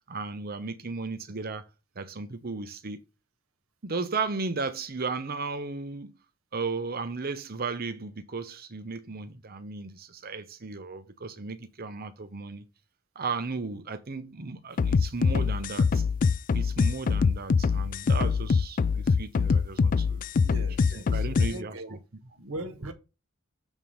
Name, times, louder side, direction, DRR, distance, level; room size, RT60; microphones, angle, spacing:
voice 1, 0.1-1.6 2.0-3.0 3.8-6.1 6.5-12.6 13.1-16.0 16.5-20.3 20.9-22.4, right 4 dB, 45° right, 0.9 m, -35 dB
sound 1, 14.8-21.5, left 5 dB, 40° left, 0.3 m, -24 dB
voice 2, 20.4-22.0 22.4-22.9, right 1 dB, 80° right, 1.3 m, -40 dB
7.3 x 3.7 x 6.4 m
head